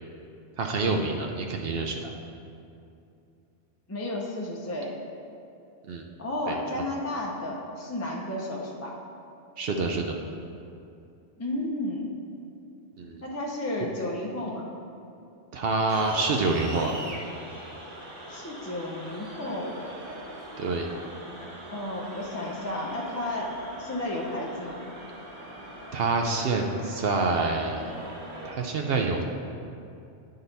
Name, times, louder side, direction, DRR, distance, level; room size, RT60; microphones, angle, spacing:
voice 1, 0.6-2.1 5.9-6.0 6.5-6.6 9.6-10.2 13.0-13.2 15.5-17.0 20.6-20.9 25.9-28.0 28.4-29.2, right 3 dB, 65° right, 2 dB, 0.7 m, -27 dB
voice 2, 3.9-4.9 6.2-8.9 11.4-12.1 13.2-14.7 18.3-19.8 21.7-23.5 23.8-24.8, left 1 dB, 20° left, -2 dB, 0.5 m, -32 dB
sound 1, 15.9-28.5, right 1 dB, 45° right, 1.3 m, -42 dB
9.7 x 3.9 x 4.0 m, 2.6 s
omnidirectional pair, 1.2 m